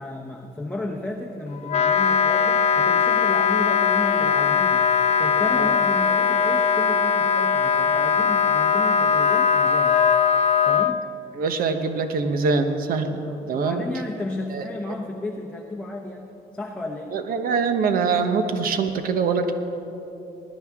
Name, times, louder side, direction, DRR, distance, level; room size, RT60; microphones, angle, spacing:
voice 1, 0.0-4.9 5.2-10.0 10.6-11.0 13.2-16.3 16.5-17.1, left 2 dB, 5° left, 0 dB, 0.9 m, -33 dB
Wind instrument woodwind instrument, 1.7-10.9, left 6 dB, 40° left, 0.4 m, -20 dB
voice 2, 11.4-13.8 14.5-14.6 17.1-19.5, right 4 dB, 60° right, 7 dB, 1.1 m, -24 dB
20.0 x 11.5 x 3.6 m, 2.9 s
cardioid pair, 110°, 17 cm